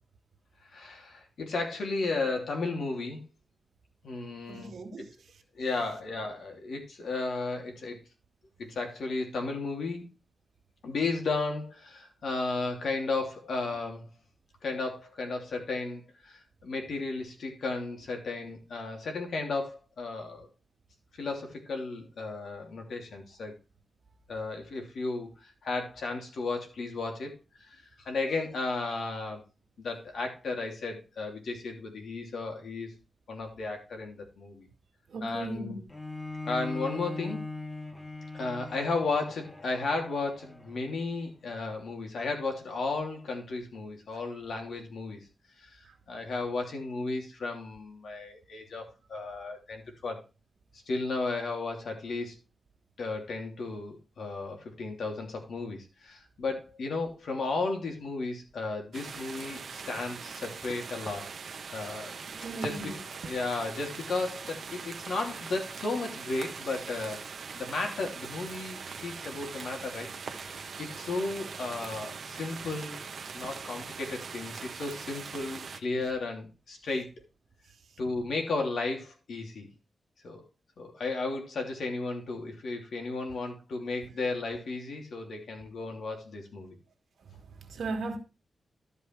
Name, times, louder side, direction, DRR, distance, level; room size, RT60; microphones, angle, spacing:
voice 1, 0.7-3.2 4.0-4.7 5.5-8.0 8.7-10.1 10.8-14.1 14.6-20.5 21.1-23.5 24.3-27.3 27.6-29.4 29.8-32.9 33.3-34.7 35.2-35.8 36.4-37.4 38.3-45.2 45.6-50.2 50.9-52.3 53.0-61.3 61.7-62.2 62.6-62.9 63.2-67.2 67.5-73.0 73.3-77.1 78.0-79.7 80.2-80.4 80.8-86.8, left 3 dB, 70° left, 3.1 m, -34 dB
voice 2, 4.5-5.4 35.1-35.8 45.8-45.9 62.3-63.0 87.2-88.2, right 3 dB, 70° right, 2.1 m, -38 dB
Bowed string instrument, 35.9-41.1, left 2 dB, 15° left, 1.2 m, -40 dB
sound 1, 58.9-75.8, right 5 dB, 55° right, 1.1 m, -41 dB
12.5 x 5.3 x 4.6 m
wide cardioid pair, 130°, 0 cm